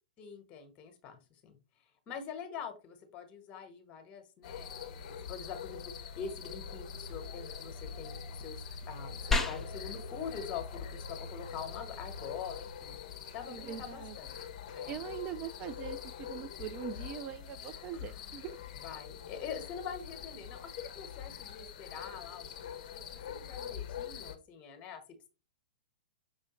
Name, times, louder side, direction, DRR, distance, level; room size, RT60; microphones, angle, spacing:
voice 1, 0.2-1.6 2.1-13.0 13.3-14.4 14.7-15.0 17.9-18.3 18.8-25.0, left 7 dB, 30° left, 1.1 m, -45 dB
sound 1, 4.4-24.4, left 7 dB, 50° left, 0.6 m, -44 dB
sound 2, 9.3-19.3, left 3 dB, 5° left, 0.7 m, -42 dB
voice 2, 13.5-14.2 14.9-18.6, right 9 dB, 30° right, 0.4 m, -42 dB
5.5 x 3.0 x 3.0 m
figure-of-eight pair, 110°, 5 cm